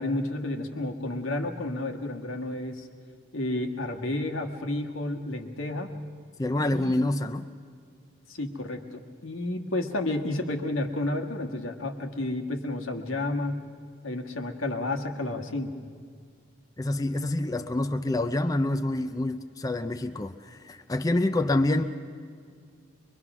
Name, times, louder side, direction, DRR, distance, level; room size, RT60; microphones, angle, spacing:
voice 1, 0.0-2.9 3.3-5.9 6.7-6.9 8.3-13.6 14.0-15.7, left 2 dB, 85° left, 4 dB, 1.6 m, -31 dB
voice 2, 6.4-7.4 16.8-21.8, left 1 dB, 20° left, 7 dB, 0.5 m, -27 dB
23.5 x 22.5 x 6.1 m, 2.1 s
head